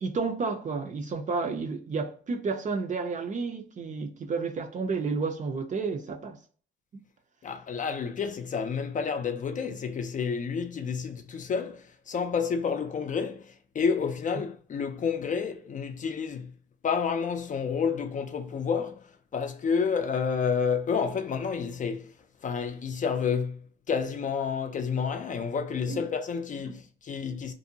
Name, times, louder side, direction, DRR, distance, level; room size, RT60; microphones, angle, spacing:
voice 1, 0.0-6.4 25.9-26.0, right 4 dB, 40° right, 0.5 m, -31 dB
voice 2, 7.4-16.5 16.8-22.1 22.4-23.6 23.9-27.5, left 6 dB, 40° left, 0.4 m, -30 dB
2.6 x 2.1 x 2.7 m
cardioid pair, 90°, 20 cm